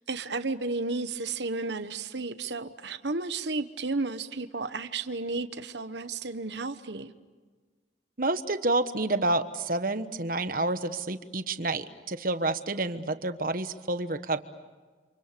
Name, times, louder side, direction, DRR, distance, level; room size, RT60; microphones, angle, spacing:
voice 1, 0.0-7.1, right 3 dB, 70° right, 11 dB, 1.2 m, -33 dB
voice 2, 8.2-14.4, right 2 dB, 50° right, 10 dB, 1.2 m, -29 dB
29.0 x 27.5 x 6.8 m, 1.4 s
head